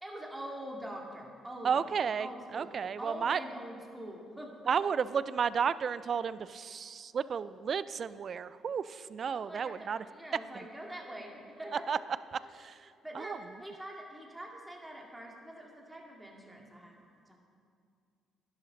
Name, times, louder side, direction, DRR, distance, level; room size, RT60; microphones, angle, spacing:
voice 1, 0.0-1.9 2.2-4.6 9.3-11.9 13.0-17.4, right 1 dB, 10° right, 0 dB, 2.2 m, -44 dB
voice 2, 1.6-3.4 4.7-10.0 11.9-12.0 12.3-13.4, right 6 dB, 50° right, 16 dB, 0.3 m, -33 dB
11.0 x 10.5 x 4.0 m, 2.2 s
hypercardioid pair, 55°, 0 cm